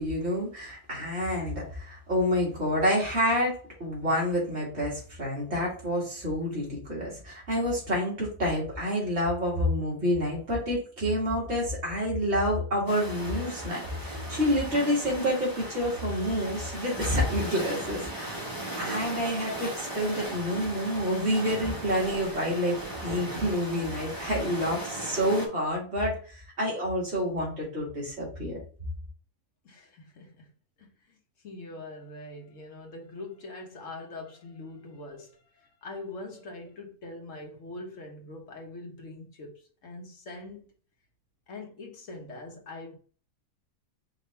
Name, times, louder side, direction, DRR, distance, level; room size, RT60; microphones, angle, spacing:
voice 1, 0.0-28.6, equal, 50° right, 2.0 m, -28 dB
sound 1, 12.9-25.5, right 1 dB, 20° left, 0.9 m, -37 dB
voice 2, 29.6-30.5 30.8-31.2 31.4-40.7 41.5-43.0, left 2 dB, 65° left, 1.2 m, -43 dB
5.1 x 2.6 x 3.2 m
omnidirectional pair, 1.4 m